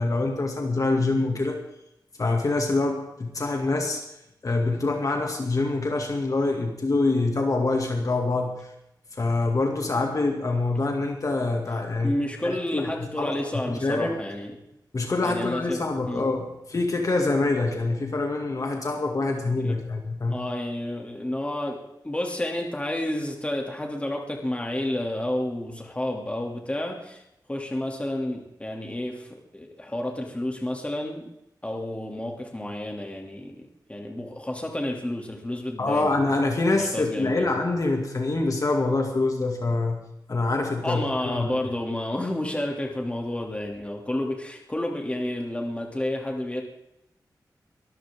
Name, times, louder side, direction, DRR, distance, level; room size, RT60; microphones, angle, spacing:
voice 1, 0.0-1.6 2.2-4.0 4.4-8.7 9.1-12.9 13.2-14.1 14.9-20.4 35.8-41.7, left 2 dB, 50° left, 2 dB, 2.4 m, -25 dB
voice 2, 12.0-14.6 15.2-16.3 19.6-19.8 20.3-27.2 27.5-31.3 31.6-36.2 36.7-37.6 40.8-46.6, left 1 dB, 15° left, 1 dB, 2.9 m, -30 dB
23.5 x 13.5 x 3.8 m, 0.84 s
wide cardioid pair, 95°, 7 cm